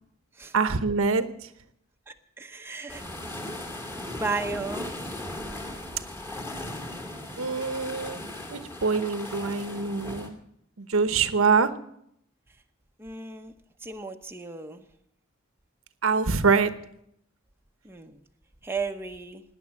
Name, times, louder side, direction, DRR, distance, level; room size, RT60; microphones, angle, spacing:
voice 1, 0.5-1.3 7.4-8.2 8.5-10.4 10.8-11.7 16.0-16.7, right 4 dB, 80° right, 11 dB, 1.0 m, -24 dB
voice 2, 2.1-3.0 4.0-4.9 13.0-13.5 13.8-14.8 17.8-18.2 18.6-19.4, right 4 dB, 10° right, 4 dB, 1.0 m, -34 dB
sound 1, 2.9-10.3, left 1 dB, 10° left, 2.6 m, -37 dB
18.0 x 9.9 x 7.2 m, 0.75 s
head